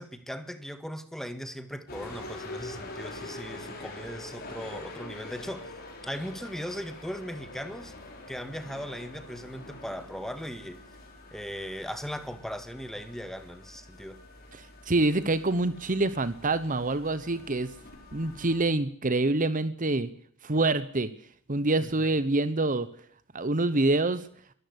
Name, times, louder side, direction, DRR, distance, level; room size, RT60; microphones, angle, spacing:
voice 1, 0.0-5.7 6.0-7.9 8.3-10.8 11.3-14.2, equal, ahead, 1.8 m, -38 dB
sound 1, 1.9-18.7, left 2 dB, 45° left, 5.8 m, -45 dB
voice 2, 14.5-17.7 18.1-20.1 20.4-21.1 21.5-22.9 23.3-24.3, right 2 dB, 40° right, 1.1 m, -26 dB
23.0 x 14.0 x 8.2 m
head